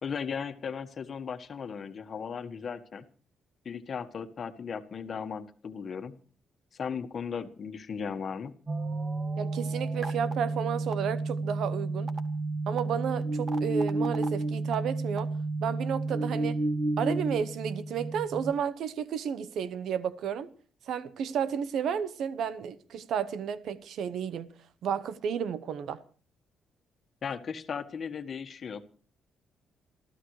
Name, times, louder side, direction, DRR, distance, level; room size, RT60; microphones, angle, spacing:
voice 1, 0.0-3.0 3.6-6.1 6.7-8.5 27.2-28.8, left 6 dB, 50° left, 1.6 m, -36 dB
sound 1, 8.7-18.5, right 3 dB, 35° right, 1.8 m, -31 dB
voice 2, 9.4-12.1 12.7-15.3 15.6-16.6 17.0-20.5 20.9-24.5 24.8-26.0, right 7 dB, 70° right, 1.0 m, -32 dB
27.5 x 14.0 x 3.2 m
cardioid pair, 90°, 0 cm